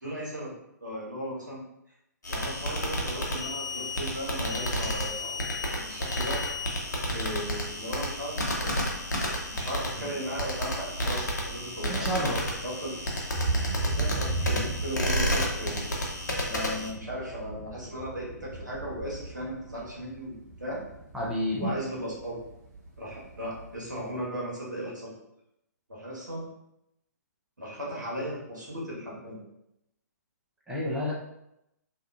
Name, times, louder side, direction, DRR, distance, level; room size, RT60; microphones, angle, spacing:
voice 1, 0.0-0.5 0.8-1.6 2.3-5.4 5.6-6.4 7.1-8.9 9.4-12.0 12.6-12.9 13.8-16.0 16.4-20.8 21.5-22.4 23.0-25.1 25.9-26.5 27.6-29.4, equal, 80° right, -5 dB, 1.2 m, -36 dB
sound 1, 2.2-16.9, equal, 70° left, 0.7 m, -31 dB
sound 2, 6.9-24.2, right 2 dB, 30° right, 1.3 m, -38 dB
voice 2, 11.9-12.4 21.1-21.7 30.7-31.1, left 1 dB, 5° right, -6 dB, 0.5 m, -29 dB
2.7 x 2.3 x 2.3 m, 0.83 s
figure-of-eight pair, 125°, 10 cm